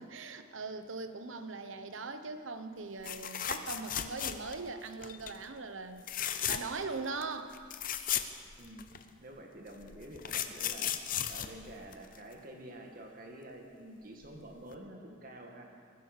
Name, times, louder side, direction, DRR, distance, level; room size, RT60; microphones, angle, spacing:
voice 1, 0.0-6.1 6.5-7.6, right 3 dB, 80° right, 9 dB, 1.0 m, -40 dB
sound 1, 3.0-4.7 5.0-5.4 6.0-6.8 7.2-7.3 7.5-9.0 9.8-12.3 14.2-14.4 14.7-14.8, left 10 dB, 45° left, 0.7 m, -35 dB
voice 2, 8.5-10.9 11.3-15.6, right 1 dB, 45° right, 1 dB, 2.0 m, -48 dB
21.0 x 9.2 x 6.7 m, 2.1 s
head